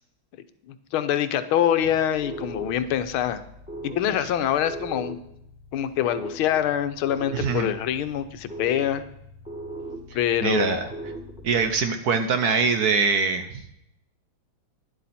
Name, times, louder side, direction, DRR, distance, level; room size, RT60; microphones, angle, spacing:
voice 1, 0.7-3.4 3.8-5.2 5.7-9.0 10.1-10.9, left 10 dB, 85° left, 11 dB, 1.6 m, -25 dB
sound 1, 2.1-11.9, right 1 dB, 5° right, 0.9 m, -40 dB
voice 2, 7.3-7.7 10.4-10.9 11.4-13.7, right 5 dB, 60° right, 8 dB, 1.1 m, -23 dB
11.5 x 10.5 x 4.2 m, 0.77 s
omnidirectional pair, 2.2 m